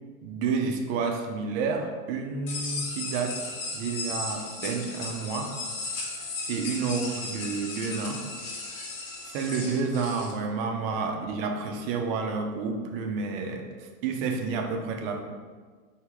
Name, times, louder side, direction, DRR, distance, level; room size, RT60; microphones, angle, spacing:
voice 1, 0.2-3.4 3.7-5.5 6.5-8.2 9.3-15.2, right 5 dB, 45° right, 4 dB, 0.6 m, -30 dB
sound 1, 2.5-10.3, left 3 dB, 70° left, 1.2 m, -36 dB
3.4 x 2.8 x 4.6 m, 1.5 s
hypercardioid pair, 130°, 42 cm